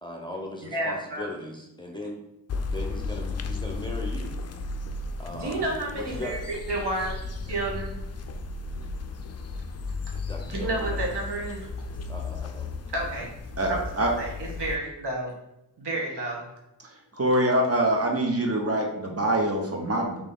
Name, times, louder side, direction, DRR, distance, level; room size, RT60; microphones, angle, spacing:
voice 1, 0.0-2.2 2.7-4.3 5.2-6.4 10.1-11.0 12.1-12.7, left 1 dB, 10° left, 0 dB, 0.7 m, -38 dB
voice 2, 0.7-1.2 5.3-7.2 7.4-8.0 10.5-11.7 12.9-13.3 13.7-13.8 14.2-15.3 15.8-16.4, right 2 dB, 65° right, -2 dB, 1.3 m, -30 dB
sound 1, 2.5-14.8, left 3 dB, 40° left, 0.4 m, -34 dB
voice 3, 13.6-14.1 17.1-20.2, right 1 dB, 35° right, 1 dB, 1.0 m, -24 dB
3.3 x 3.1 x 3.8 m, 0.90 s
cardioid pair, 55°, 42 cm